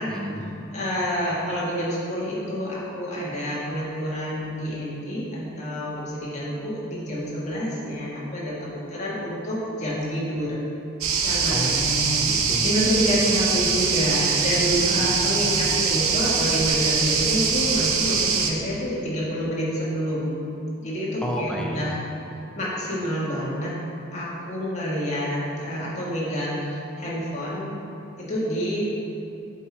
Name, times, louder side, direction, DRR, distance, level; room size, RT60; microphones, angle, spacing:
voice 1, 0.1-0.5 11.5-12.7 15.0-15.8 21.2-21.9, equal, 5° left, -2 dB, 0.6 m, -31 dB
voice 2, 0.7-10.6 11.2-11.6 12.6-20.3 20.8-22.0 22.6-23.7 24.1-27.8 28.2-28.9, equal, 35° left, -7 dB, 1.6 m, -28 dB
sound 1, 11.0-18.5, right 5 dB, 85° right, 0.7 m, -23 dB
8.0 x 4.5 x 4.4 m, 2.7 s
head